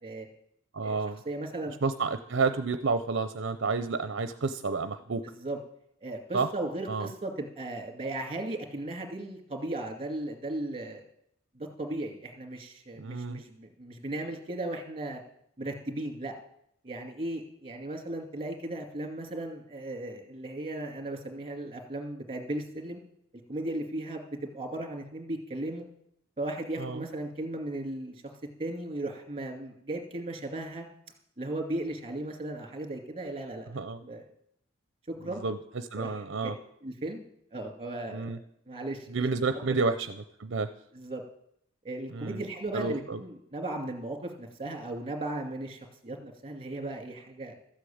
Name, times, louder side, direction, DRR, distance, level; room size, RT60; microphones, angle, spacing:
voice 1, 0.7-1.2 1.8-5.2 6.3-6.5 6.9-7.1 13.0-13.4 26.8-27.0 33.7-34.0 35.3-35.6 35.9-36.5 38.1-38.4 39.1-40.1 40.4-40.7 42.1-42.4 42.7-43.2, right 4 dB, 60° right, 10 dB, 0.6 m, -30 dB
voice 2, 1.3-1.8 5.4-5.6 6.0-11.0 11.5-15.2 15.6-16.3 16.8-23.0 23.5-25.9 26.4-28.1 28.6-30.9 31.4-34.3 35.2-35.4 36.0-36.5 36.8-37.2 37.5-38.4 38.7-39.3 40.9-41.2 41.8-47.5, right 1 dB, 30° right, 5 dB, 2.3 m, -36 dB
13.5 x 8.2 x 8.7 m, 0.72 s
head